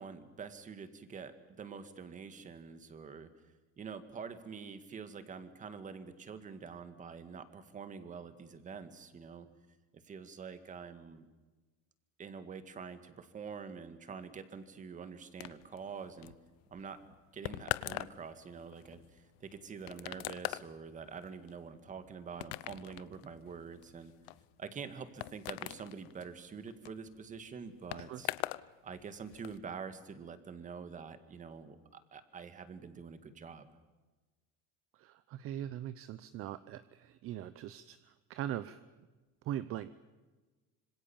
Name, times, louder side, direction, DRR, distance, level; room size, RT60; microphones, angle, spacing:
voice 1, 0.0-3.3 3.8-9.5 10.0-11.3 12.2-16.3 16.7-17.0 17.3-24.1 24.6-28.3 28.8-31.8 32.1-33.7, right 6 dB, 25° right, 10 dB, 2.0 m, -46 dB
sound 1, 15.4-28.7 28.9-29.6, left 20 dB, 80° left, 0.9 m, -43 dB
voice 2, 34.9-38.8 39.4-40.0, right 11 dB, 40° right, 14 dB, 0.8 m, -41 dB
26.5 x 25.5 x 7.2 m, 1.2 s
cardioid pair, 170°, 33 cm